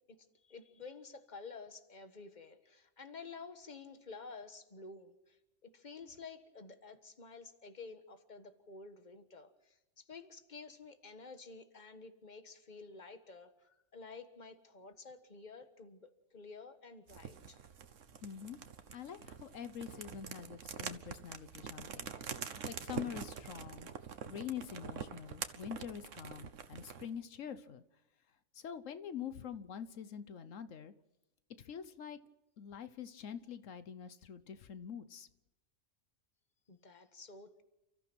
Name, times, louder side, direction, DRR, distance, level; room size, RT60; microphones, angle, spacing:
voice 1, 0.4-16.0 16.3-17.6 36.7-37.6, left 4 dB, 35° left, 9 dB, 1.6 m, -51 dB
sound 1, 17.1-27.1, right 7 dB, 75° right, 1.4 m, -45 dB
voice 2, 18.2-18.6 18.9-23.9 24.3-27.8 28.5-30.9 31.6-32.2 32.6-35.3, left 8 dB, 80° left, 12 dB, 1.3 m, -45 dB
30.0 x 14.0 x 6.2 m, 0.98 s
omnidirectional pair, 1.3 m